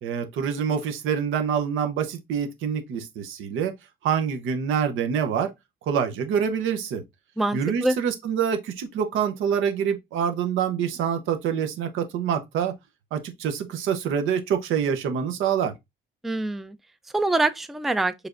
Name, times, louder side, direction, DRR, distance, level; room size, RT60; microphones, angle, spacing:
voice 1, 0.0-3.7 4.0-5.5 5.9-7.0 7.5-12.7 13.1-15.7, right 7 dB, 85° right, 0.7 m, -26 dB
voice 2, 7.4-8.0 16.2-16.8 17.1-18.1, right 2 dB, ahead, 0.3 m, -24 dB
4.7 x 3.3 x 2.5 m
cardioid pair, 90°, 20 cm